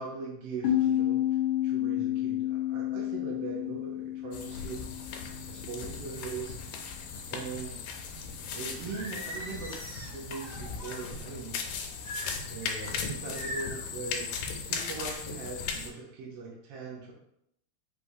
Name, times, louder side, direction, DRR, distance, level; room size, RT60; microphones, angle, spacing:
voice 1, 0.0-4.8 5.5-6.5 7.3-7.8 8.5-9.8 10.1-11.6 12.5-14.3 14.7-17.1, right 4 dB, 70° right, -3 dB, 1.5 m, -40 dB
sound 1, 0.6-6.0, left 12 dB, 60° left, 1.4 m, -30 dB
sound 2, 4.3-15.9, left 5 dB, 90° left, 2.0 m, -38 dB
Singing, 8.9-11.0 12.0-12.9 13.3-13.9, right 1 dB, 45° right, 2.0 m, -41 dB
4.8 x 3.4 x 2.6 m, 0.77 s
omnidirectional pair, 3.4 m